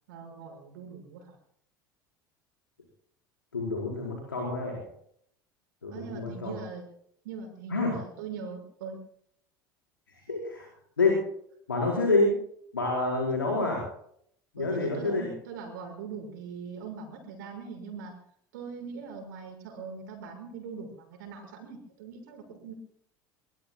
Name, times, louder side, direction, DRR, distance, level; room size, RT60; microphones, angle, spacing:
voice 1, 0.1-1.4 5.9-6.8 7.2-9.0 14.6-18.2 18.5-22.7, right 5 dB, 65° right, 3 dB, 6.1 m, -41 dB
voice 2, 3.5-4.9 5.8-6.5 7.7-7.9 10.1-10.7 11.0-11.3 11.7-12.4 12.7-13.9 14.5-15.2, left 3 dB, 80° left, -1 dB, 4.8 m, -27 dB
25.0 x 23.0 x 2.3 m, 0.65 s
figure-of-eight pair, 70°, 11 cm